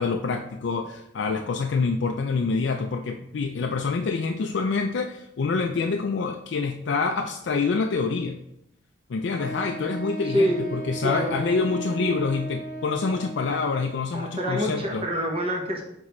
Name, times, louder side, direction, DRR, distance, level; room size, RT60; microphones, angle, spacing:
voice 1, 0.0-8.4 9.1-15.1, left 4 dB, 75° left, 3 dB, 0.4 m, -26 dB
Wind instrument woodwind instrument, 9.4-13.8, right 2 dB, 5° left, 0.8 m, -35 dB
voice 2, 10.2-10.6 11.0-11.4 11.7-12.2 14.1-15.8, equal, 30° right, 0 dB, 1.1 m, -27 dB
7.2 x 4.6 x 3.1 m, 0.79 s
head